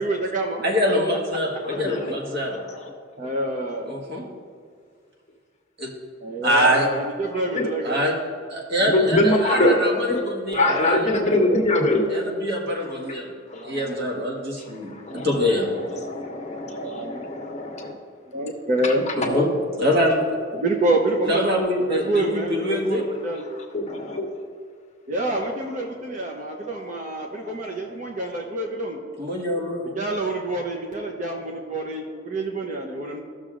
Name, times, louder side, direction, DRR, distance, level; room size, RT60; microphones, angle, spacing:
voice 1, 0.0-0.6 3.2-3.9 6.2-8.0 9.7-10.0 13.5-14.2 16.7-17.2 18.3-19.1 20.5-21.5 21.9-23.4 25.1-29.0 29.9-33.2, right 2 dB, 40° right, 0 dB, 0.8 m, -27 dB
voice 2, 0.6-2.6 3.9-4.2 5.8-5.9 6.4-6.9 7.8-8.2 8.5-11.1 12.1-13.3 13.6-15.7 19.1-19.5 19.8-20.3 21.2-23.0 29.2-29.9, equal, 55° right, -2 dB, 1.7 m, -24 dB
voice 3, 1.7-2.1 7.5-7.6 8.9-9.8 10.1-10.2 10.5-12.4 15.1-15.3 16.0-17.9 19.3-19.4 23.7-24.3, left 1 dB, 35° left, 1 dB, 1.2 m, -22 dB
15.5 x 6.5 x 2.5 m, 2.1 s
head